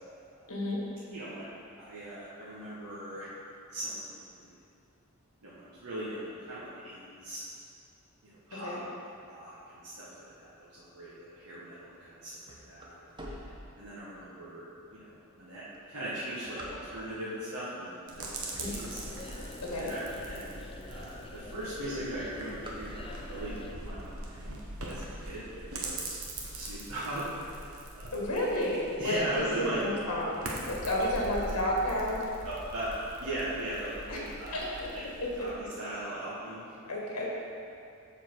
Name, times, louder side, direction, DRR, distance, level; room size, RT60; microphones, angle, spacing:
voice 1, 0.5-0.8 8.5-8.8 18.6-18.7 19.6-19.9 28.1-30.4 30.7-32.2 34.1-34.2 34.5-34.9 35.4-35.5 36.9-37.3, left 1 dB, 80° left, -3 dB, 1.8 m, -31 dB
voice 2, 1.1-1.5 1.8-3.3 3.7-4.0 4.4-4.5 5.4-7.4 8.2-8.8 9.2-12.3 12.6-13.0 13.8-14.6 14.9-15.6 15.9-19.0 19.8-20.0 20.3-20.6 20.9-24.5 24.8-26.2 26.5-28.1 29.0-29.8 31.4-31.5 32.4-34.6 35.4-36.6, right 1 dB, 85° right, -9 dB, 1.4 m, -39 dB
sound 1, 12.4-14.2 14.8-14.9 15.6-17.3 17.9-18.1 18.4-20.0 20.5-20.6 20.8-20.9 21.2-21.5 21.8-23.4, equal, 20° right, 1.0 m, -47 dB
sound 2, 18.1-35.5, right 2 dB, 70° right, 1.2 m, -42 dB
sound 3, 18.6-23.8, left 2 dB, 25° left, 0.5 m, -46 dB
7.3 x 6.5 x 4.6 m, 2.5 s
head